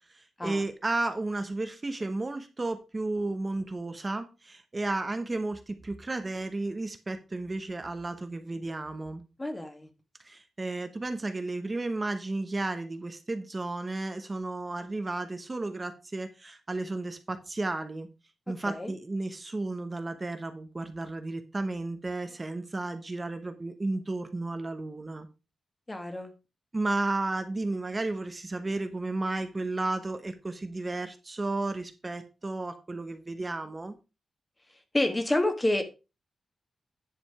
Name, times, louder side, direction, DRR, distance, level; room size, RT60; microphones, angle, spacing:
voice 1, 0.1-9.2 10.2-18.1 18.5-25.3 26.7-34.0, right 2 dB, 20° right, 0.9 m, -33 dB
voice 2, 9.4-9.9 18.7-18.9 25.9-26.3 34.9-35.8, left 1 dB, 15° left, 1.5 m, -28 dB
10.5 x 5.0 x 4.8 m
wide cardioid pair, 170°, 0 cm